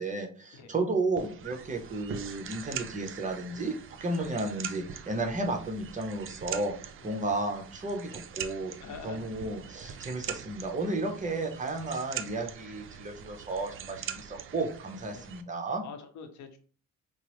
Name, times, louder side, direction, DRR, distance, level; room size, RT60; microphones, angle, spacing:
voice 1, 0.0-6.7 7.0-8.7 9.0-15.8, right 2 dB, 25° right, 4 dB, 0.8 m, -33 dB
sound 1, 1.2-15.4, right 8 dB, 45° right, 0.4 m, -43 dB
voice 2, 8.8-9.3 15.1-15.3 15.8-16.6, left 5 dB, 70° left, 6 dB, 0.8 m, -45 dB
4.3 x 2.0 x 3.0 m, 0.43 s
cardioid pair, 90°, 30 cm